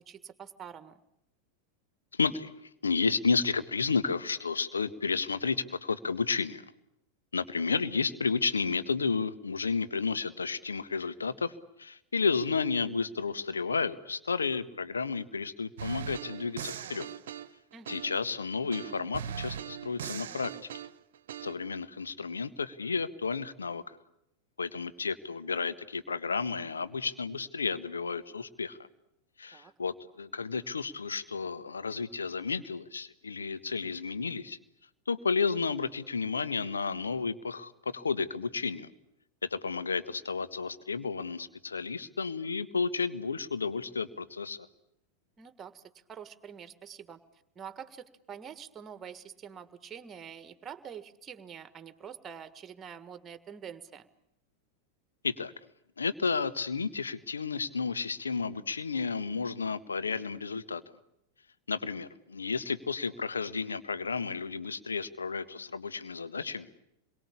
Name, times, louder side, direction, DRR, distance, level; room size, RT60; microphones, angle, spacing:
voice 1, 0.1-1.0 17.7-18.0 29.5-29.7 45.4-45.8 46.1-47.2 47.5-54.1, right 8 dB, 25° right, 12 dB, 1.7 m, -46 dB
voice 2, 2.1-2.5 2.8-6.6 7.3-11.5 11.8-17.1 17.9-20.5 21.4-24.0 24.6-28.8 29.4-34.6 35.1-38.9 39.4-44.6 55.2-55.5 56.0-60.8 61.7-66.7, left 5 dB, 75° left, 13 dB, 1.4 m, -32 dB
sound 1, 15.8-18.3 18.7-21.5, right 9 dB, 60° right, 1.0 m, -40 dB
28.0 x 22.5 x 8.5 m, 0.80 s
figure-of-eight pair, 90°, 0 cm